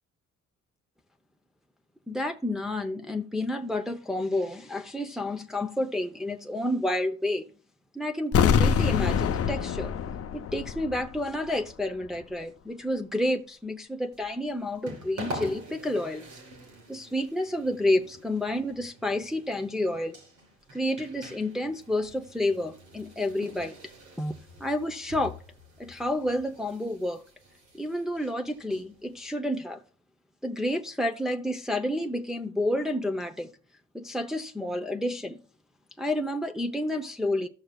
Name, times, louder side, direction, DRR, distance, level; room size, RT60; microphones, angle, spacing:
voice 1, 2.1-7.5 7.9-9.9 10.3-16.3 16.9-20.2 20.7-23.8 24.2-24.3 24.6-25.3 25.8-27.2 27.7-29.8 30.4-33.5 33.9-35.4 36.0-37.5, left 1 dB, ahead, 0.7 m, -30 dB
sound 1, 8.3-11.2 11.5-11.6, left 7 dB, 50° left, 0.7 m, -25 dB
sound 2, 14.1-29.3, equal, 90° right, 3.9 m, -46 dB
14.0 x 6.4 x 2.3 m
cardioid pair, 90°, 30 cm